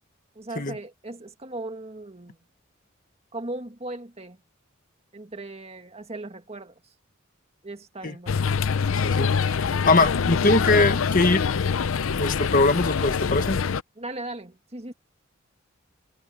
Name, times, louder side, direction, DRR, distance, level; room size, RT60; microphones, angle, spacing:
voice 1, 0.4-2.4 3.3-4.4 5.1-6.7 7.6-8.6 14.0-14.9, right 2 dB, 30° right, 2.0 m, -37 dB
sound 1, 8.3-13.8, left 5 dB, 80° left, 0.6 m, -24 dB
voice 2, 9.0-11.4 12.2-13.6, left 3 dB, 45° left, 1.4 m, -22 dB
head